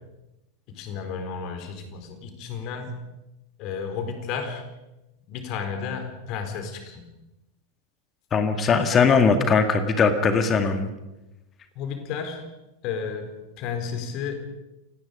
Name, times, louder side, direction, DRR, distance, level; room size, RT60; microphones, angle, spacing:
voice 1, 0.7-2.9 3.6-4.6 5.3-7.1 8.9-9.1 11.8-12.5 12.8-14.3, left 6 dB, 40° left, 6 dB, 4.3 m, -32 dB
voice 2, 8.3-10.9, left 5 dB, 25° left, 8 dB, 2.1 m, -20 dB
29.0 x 18.5 x 5.3 m, 0.97 s
figure-of-eight pair, 90°, 0 cm